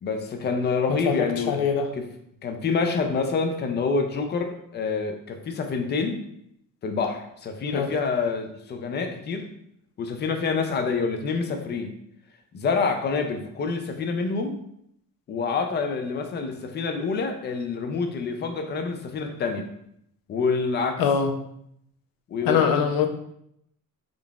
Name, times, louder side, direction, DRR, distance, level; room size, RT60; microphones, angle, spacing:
voice 1, 0.0-1.6 2.0-2.1 2.4-6.2 6.8-9.5 10.0-12.0 12.5-14.6 15.3-19.7 20.3-21.1 22.3-22.7, left 4 dB, 30° left, 5 dB, 0.4 m, -27 dB
voice 2, 1.1-1.9 7.7-7.9 21.0-21.3 22.5-23.1, left 7 dB, 85° left, 5 dB, 0.6 m, -23 dB
3.7 x 3.6 x 2.3 m, 0.74 s
cardioid pair, 160°, 34 cm